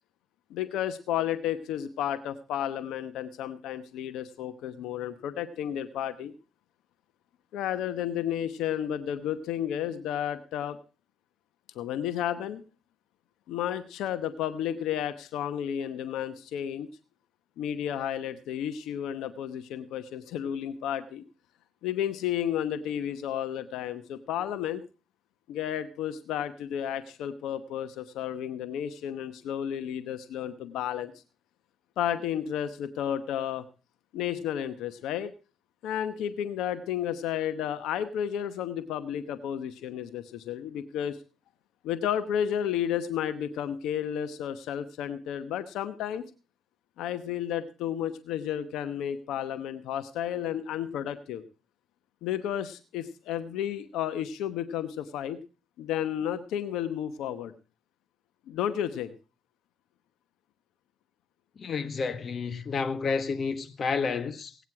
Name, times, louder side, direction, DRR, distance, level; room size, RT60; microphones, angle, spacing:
voice 1, 0.5-6.3 7.5-10.8 11.7-12.6 13.5-16.9 17.6-21.2 21.8-24.8 25.5-31.1 32.0-33.7 34.1-35.3 35.8-41.2 41.8-46.2 47.0-51.4 52.2-55.4 55.8-57.5 58.5-59.1, left 10 dB, 90° left, 0.9 m, -32 dB
voice 2, 61.6-64.6, left 5 dB, 50° left, 1.3 m, -30 dB
17.5 x 9.4 x 4.7 m
cardioid pair, 90°, 0 cm